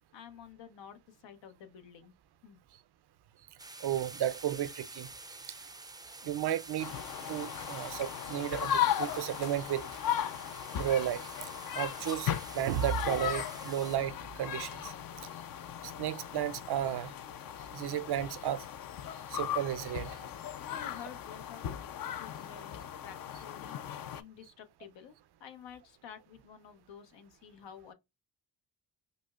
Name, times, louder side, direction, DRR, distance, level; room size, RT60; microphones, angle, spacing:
voice 1, 0.1-2.1 2.4-2.6 20.6-21.8 22.2-23.2 23.4-23.8 24.1-25.1 25.4-27.9, left 8 dB, 85° left, 0.8 m, -50 dB
sound 1, 3.6-14.0, right 3 dB, 10° right, 0.4 m, -48 dB
voice 2, 3.8-5.1 6.2-6.9 7.3-9.8 10.7-11.2 11.7-14.9 15.8-17.1 17.7-18.6 19.3-20.2, right 11 dB, 65° right, 0.5 m, -33 dB
sound 2, 6.8-24.2, left 10 dB, 55° left, 0.5 m, -37 dB
5.2 x 2.0 x 2.3 m
cardioid pair, 50°, 43 cm